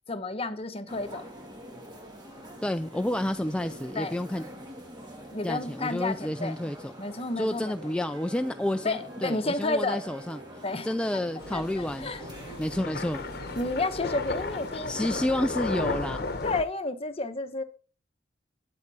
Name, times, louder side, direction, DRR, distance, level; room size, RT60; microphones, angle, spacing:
voice 1, 0.1-1.3 4.0-4.1 5.3-6.6 7.0-7.7 8.8-10.0 10.6-10.9 11.5-12.6 13.6-14.9 16.4-17.6, left 2 dB, 35° left, 1.0 m, -31 dB
sound 1, 0.9-16.5, equal, 25° right, 2.6 m, -45 dB
voice 2, 2.6-4.5 5.4-6.9 7.4-10.4 10.8-12.3 12.6-13.2 14.9-16.3, left 1 dB, 5° left, 0.3 m, -30 dB
sound 2, 7.2-14.8, right 2 dB, 70° right, 3.7 m, -50 dB
sound 3, 11.4-16.6, left 3 dB, 60° left, 1.0 m, -34 dB
8.7 x 8.1 x 4.1 m
head